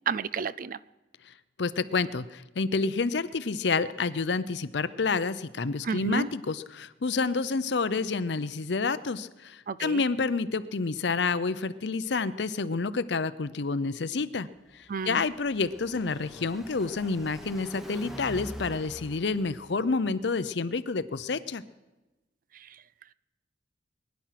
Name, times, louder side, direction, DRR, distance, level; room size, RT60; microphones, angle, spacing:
voice 1, 0.1-0.8 5.8-6.3 9.7-10.0 14.9-15.2, right 6 dB, 45° right, 19 dB, 0.4 m, -31 dB
voice 2, 1.6-14.5 15.0-21.6, left 4 dB, 65° left, 14 dB, 0.6 m, -29 dB
Car passing by, 14.6-20.1, equal, ahead, 1.1 m, -45 dB
22.0 x 10.5 x 5.9 m, 1.1 s
head